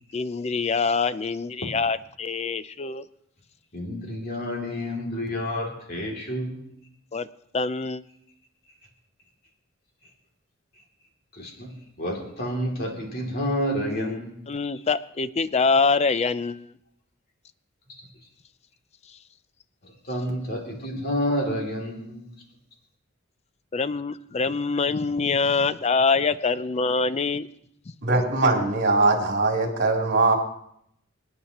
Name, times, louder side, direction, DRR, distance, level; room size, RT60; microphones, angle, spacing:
voice 1, 0.1-3.0 7.1-7.3 7.5-8.0 13.9-16.8 19.1-19.2 23.7-27.5, left 4 dB, 30° left, 15 dB, 0.4 m, -25 dB
voice 2, 3.7-6.6 11.3-11.7 12.0-14.4 19.8-22.2, equal, 45° left, 0 dB, 2.8 m, -29 dB
voice 3, 28.0-30.4, right 3 dB, 50° right, 0 dB, 3.3 m, -21 dB
27.5 x 9.5 x 3.0 m, 0.74 s
head